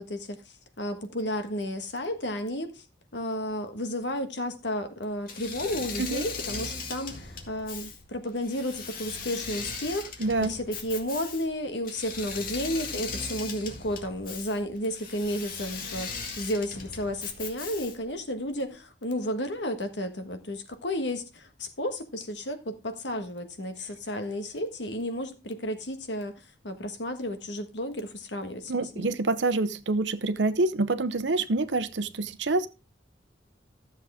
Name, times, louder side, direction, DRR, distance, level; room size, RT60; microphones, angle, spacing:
voice 1, 0.0-2.8 3.1-10.1 10.5-29.2, left 1 dB, 75° left, 1.4 m, -32 dB
Engine / Mechanisms, 5.3-18.2, left 4 dB, 50° left, 2.0 m, -38 dB
voice 2, 10.2-10.6 28.7-32.7, right 3 dB, 75° right, 0.8 m, -26 dB
13.5 x 7.3 x 3.5 m
head